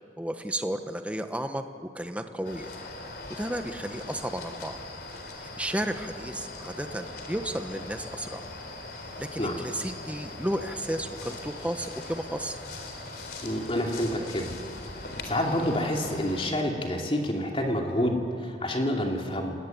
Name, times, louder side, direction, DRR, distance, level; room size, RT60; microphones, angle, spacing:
voice 1, 0.2-1.6 1.9-2.7 3.4-4.8 5.6-8.4 9.2-12.6, right 1 dB, 5° right, 7 dB, 1.1 m, -33 dB
sound 1, 2.4-16.5, left 2 dB, 60° left, 3.7 m, -41 dB
voice 2, 13.4-14.5 15.2-19.5, left 1 dB, 30° left, 1 dB, 2.8 m, -28 dB
28.5 x 19.5 x 9.4 m, 2.4 s
head